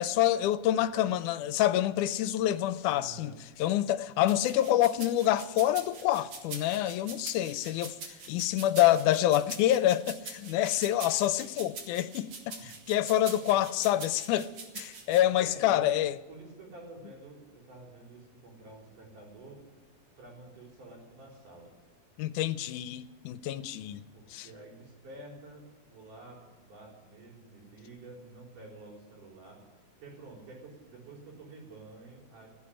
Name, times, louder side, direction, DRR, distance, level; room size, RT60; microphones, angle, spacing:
voice 1, 0.0-3.3 3.6-7.9 8.3-14.5 14.8-16.2 22.2-24.0 24.3-24.5, left 13 dB, 85° left, 2.1 m, -27 dB
voice 2, 2.9-3.4 12.6-12.7 13.2-13.6 15.4-16.0 16.3-19.6 20.2-21.7 24.1-32.5, right 2 dB, 80° right, 5.6 m, -49 dB
sound 1, 4.3-15.2, right 4 dB, 55° right, 2.8 m, -44 dB
16.0 x 8.3 x 9.9 m
omnidirectional pair, 3.5 m